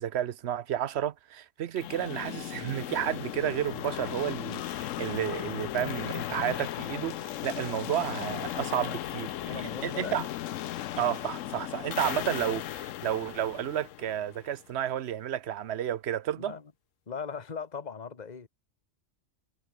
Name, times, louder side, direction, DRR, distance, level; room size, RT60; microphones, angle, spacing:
voice 1, 0.0-10.3 11.0-16.6, right 10 dB, 60° right, 0.9 m, -32 dB
sound 1, 1.8-14.6, left 12 dB, 80° left, 1.0 m, -36 dB
voice 2, 9.4-10.2 16.4-16.6 17.1-18.5, left 6 dB, 35° left, 1.6 m, -39 dB
omnidirectional pair, 1.3 m